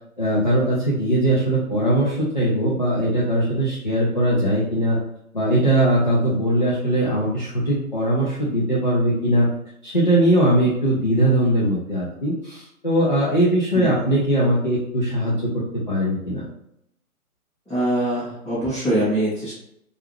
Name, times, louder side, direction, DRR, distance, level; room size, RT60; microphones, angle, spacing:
voice 1, 0.2-5.0 5.3-9.5 9.8-16.4, right 1 dB, 35° left, -7 dB, 0.4 m, -20 dB
voice 2, 13.7-14.1 17.7-19.5, right 1 dB, ahead, -18 dB, 0.8 m, -23 dB
2.3 x 2.2 x 3.1 m, 0.77 s
figure-of-eight pair, 150°, 44 cm